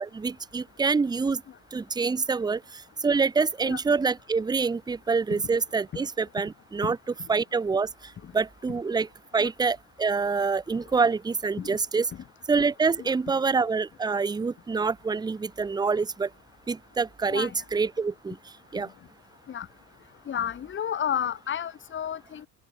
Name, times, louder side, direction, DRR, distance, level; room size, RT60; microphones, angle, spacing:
voice 1, 0.0-1.4 1.7-2.6 3.0-7.0 7.3-7.9 8.3-9.1 9.3-12.1 12.5-16.3 16.7-18.4 18.7-18.9, right 4 dB, 15° right, 0.8 m, -26 dB
voice 2, 17.3-17.6 19.5-19.7 20.3-22.5, left 9 dB, 40° left, 3.8 m, -32 dB
open air
cardioid pair, 120°, 29 cm